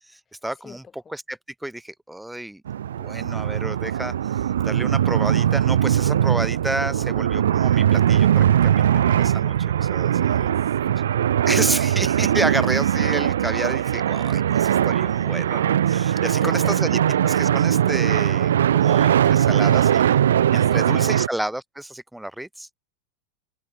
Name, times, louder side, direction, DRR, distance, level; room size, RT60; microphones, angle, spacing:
voice 1, 0.1-0.8 1.1-2.6 2.9-10.5 11.5-16.9 17.2-20.2 20.5-22.7, right 1 dB, 5° right, 2.0 m, -31 dB
voice 2, 0.6-1.1 6.7-7.3 10.3-11.4 16.2-17.0 20.6-21.2, left 6 dB, 20° left, 6.0 m, -44 dB
sound 1, 2.7-21.3, right 10 dB, 65° right, 0.5 m, -20 dB
figure-of-eight pair, 90°, 0 cm